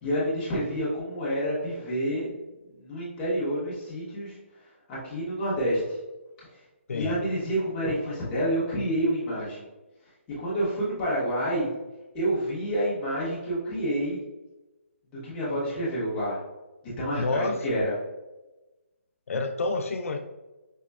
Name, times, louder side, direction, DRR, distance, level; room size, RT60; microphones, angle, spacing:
voice 1, 0.0-2.4 2.7-4.4 4.9-6.0 6.9-9.6 10.4-11.7 12.1-14.2 15.2-16.4 17.0-18.0, equal, 10° left, -9 dB, 0.8 m, -28 dB
voice 2, 17.2-17.8 19.3-20.2, left 3 dB, 90° left, 5 dB, 0.3 m, -29 dB
5.2 x 2.1 x 2.2 m, 1.1 s
hypercardioid pair, 175°, 7 cm